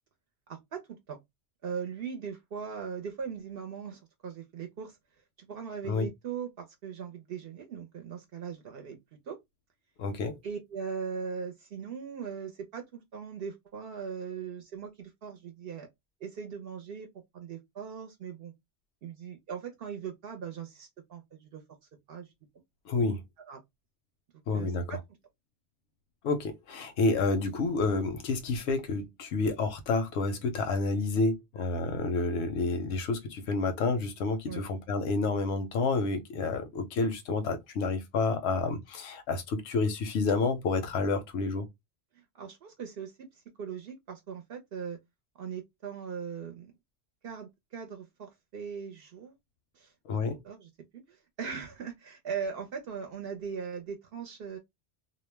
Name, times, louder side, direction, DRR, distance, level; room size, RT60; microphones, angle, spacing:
voice 1, 0.5-0.8 1.1-1.2 1.6-5.0 5.4-9.0 9.3-9.4 10.4-15.9 16.2-17.1 17.3-18.5 19.0-21.6 22.1-22.3 23.5-23.6 24.5-25.0 34.5-34.7 42.1-45.0 45.4-46.7 47.2-49.4 49.7-49.9 50.2-50.7 51.1-54.6, right 6 dB, 65° right, 0.7 m, -39 dB
voice 2, 10.0-10.4 22.9-23.2 24.5-25.0 26.2-41.7 50.1-50.4, left 3 dB, 80° left, 0.9 m, -29 dB
2.3 x 2.0 x 3.1 m
omnidirectional pair, 1.2 m